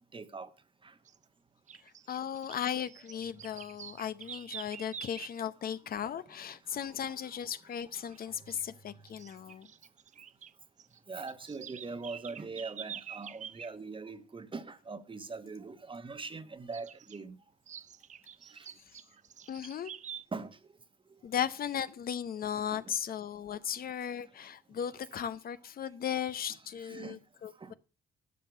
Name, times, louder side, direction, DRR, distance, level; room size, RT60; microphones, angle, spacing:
voice 1, 0.1-0.5 7.1-7.2 11.1-17.3 20.3-20.6 22.7-22.8 26.8-27.2 27.6-27.7, right 4 dB, 30° right, 1.1 m, -42 dB
sound 1, 1.1-1.2 1.7-5.4 8.0-8.2 8.5-8.6 9.1-10.5 10.8-13.7 16.7-17.2 17.7-20.2, right 8 dB, 45° right, 0.5 m, -47 dB
voice 2, 2.1-9.7 19.5-19.9 21.2-27.7, left 9 dB, 60° left, 0.7 m, -36 dB
12.0 x 5.5 x 6.6 m
cardioid pair, 75°, 17 cm